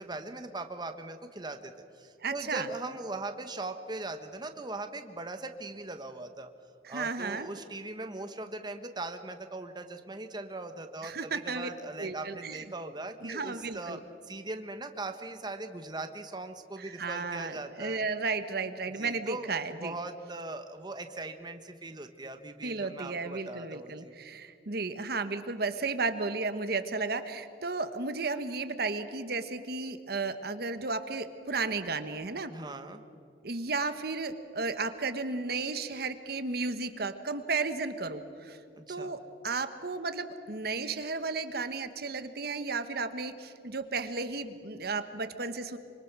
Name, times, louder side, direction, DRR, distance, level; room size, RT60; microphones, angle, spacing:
voice 1, 0.0-6.5 6.9-14.0 14.2-18.0 19.0-19.5 19.8-24.1 32.5-33.0 38.8-39.2, right 2 dB, 25° right, 7 dB, 1.3 m, -40 dB
voice 2, 2.2-2.7 6.8-7.5 11.0-11.7 12.0-12.6 13.2-14.0 16.8-19.9 22.6-32.5 33.4-38.6 38.9-45.8, right 4 dB, 60° right, 10 dB, 1.2 m, -34 dB
25.5 x 24.5 x 6.1 m, 2.5 s
head